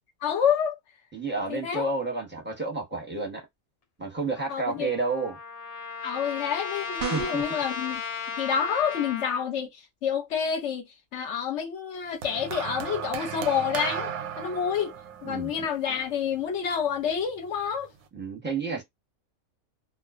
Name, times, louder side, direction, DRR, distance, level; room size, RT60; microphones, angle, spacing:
voice 1, 0.2-0.7 1.5-1.9 4.5-4.9 6.0-8.0 8.4-10.8 11.1-14.9 15.2-17.9, left 8 dB, 65° left, 0.8 m, -28 dB
voice 2, 1.1-3.5 4.0-5.4 7.1-7.5 15.2-15.7 18.1-18.8, right 3 dB, 10° right, 0.7 m, -31 dB
Trumpet, 4.3-9.5, left 6 dB, 90° left, 0.3 m, -36 dB
sound 1, 7.0-7.6, right 6 dB, 55° right, 0.6 m, -32 dB
sound 2, 12.2-16.6 17.6-17.8, right 8 dB, 90° right, 1.0 m, -35 dB
2.3 x 2.3 x 2.4 m
omnidirectional pair, 1.4 m